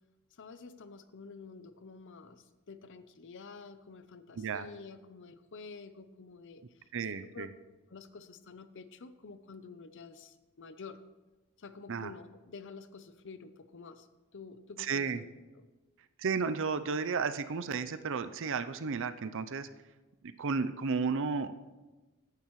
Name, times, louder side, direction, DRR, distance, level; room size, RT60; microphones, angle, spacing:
voice 1, 0.3-7.5 7.9-11.0 11.6-14.1 14.3-15.2 15.5-15.7, left 4 dB, 60° left, 12 dB, 0.7 m, -49 dB
voice 2, 6.9-7.5 11.9-12.1 14.8-15.2 16.2-19.7 20.2-21.5, right 5 dB, 60° right, 11 dB, 0.6 m, -33 dB
14.5 x 10.5 x 3.2 m, 1.2 s
head